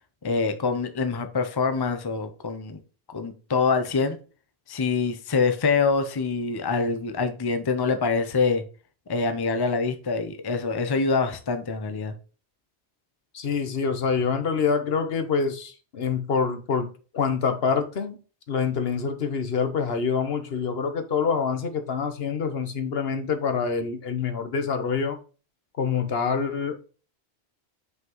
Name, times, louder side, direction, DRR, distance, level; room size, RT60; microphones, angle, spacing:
voice 1, 0.2-2.8 3.1-4.2 4.7-8.6 9.1-12.1, left 4 dB, 25° left, 8 dB, 0.6 m, -25 dB
voice 2, 13.3-18.2 18.5-25.2 25.8-26.8, left 5 dB, 60° left, 8 dB, 1.1 m, -26 dB
5.8 x 5.5 x 3.0 m, 0.36 s
omnidirectional pair, 1.1 m